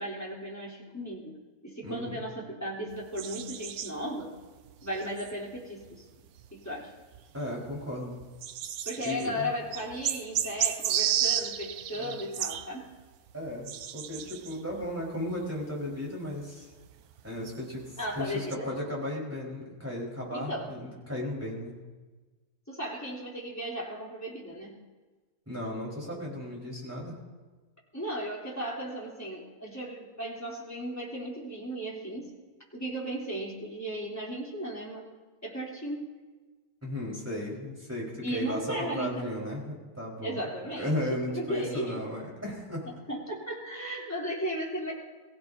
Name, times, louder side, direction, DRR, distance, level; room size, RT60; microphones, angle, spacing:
voice 1, 0.0-1.3 1.6-4.3 4.8-6.1 6.5-6.9 8.8-12.9 18.0-18.7 20.3-20.7 22.7-24.8 27.9-32.3 32.7-35.1 35.4-36.1 38.2-39.3 40.2-42.0 42.9-44.9, equal, 10° left, -5 dB, 3.4 m, -36 dB
voice 2, 1.8-2.2 7.3-8.2 9.0-9.5 12.0-12.2 13.3-16.7 17.2-21.7 25.5-27.2 36.8-40.4 40.8-42.9, left 1 dB, 10° right, -5 dB, 4.7 m, -35 dB
sound 1, 2.9-6.0 6.3-18.6, right 10 dB, 70° right, 1.1 m, -34 dB
23.5 x 16.0 x 2.8 m, 1.3 s
omnidirectional pair, 1.7 m